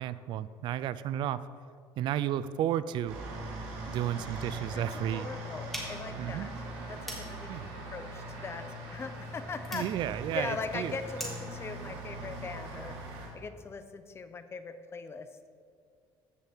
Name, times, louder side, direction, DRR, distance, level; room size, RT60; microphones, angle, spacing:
voice 1, 0.0-1.4 2.0-3.2 3.9-5.3 6.2-6.5 7.5-7.7 9.7-10.9, right 11 dB, 60° right, 15 dB, 0.4 m, -32 dB
sound 1, 3.1-13.3, right 1 dB, 85° right, 2.8 m, -41 dB
voice 2, 5.1-6.5 6.9-13.0 13.3-15.5, left 4 dB, 30° left, 10 dB, 0.6 m, -40 dB
sound 2, 5.7-11.6, equal, ahead, 2.6 m, -45 dB
15.0 x 5.2 x 4.5 m, 2.2 s
cardioid pair, 125°, 9 cm